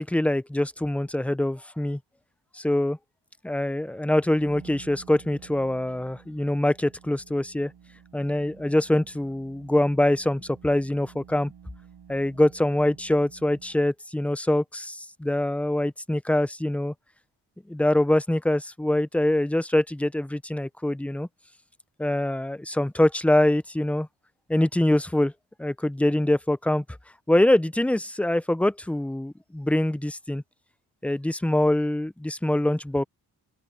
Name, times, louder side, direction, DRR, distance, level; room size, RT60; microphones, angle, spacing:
voice 1, 0.0-2.0 2.5-3.0 3.4-7.7 8.1-11.5 12.1-16.9 17.7-21.3 22.0-24.1 24.5-25.3 25.6-26.8 27.3-30.4 31.0-33.0, left 1 dB, 5° left, 0.4 m, -24 dB
sound 1, 4.0-13.9, right 8 dB, 75° right, 6.7 m, -51 dB
open air
wide cardioid pair, 135°, 40 cm